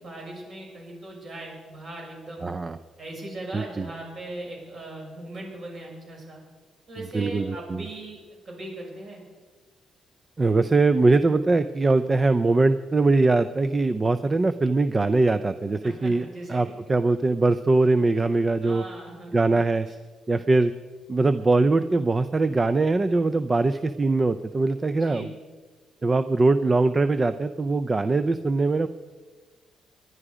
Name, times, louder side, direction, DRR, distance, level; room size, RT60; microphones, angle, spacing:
voice 1, 0.0-2.5 3.0-6.4 6.9-9.2 15.8-16.8 18.6-20.0 24.9-25.3, right 2 dB, 45° right, -1 dB, 6.4 m, -39 dB
voice 2, 2.4-2.8 3.5-3.9 7.1-7.9 10.4-18.8 19.3-19.9 20.3-20.7 21.1-25.3 26.0-28.9, right 3 dB, 20° right, 11 dB, 0.4 m, -22 dB
21.5 x 11.0 x 5.0 m, 1.4 s
cardioid pair, 140°, 0 cm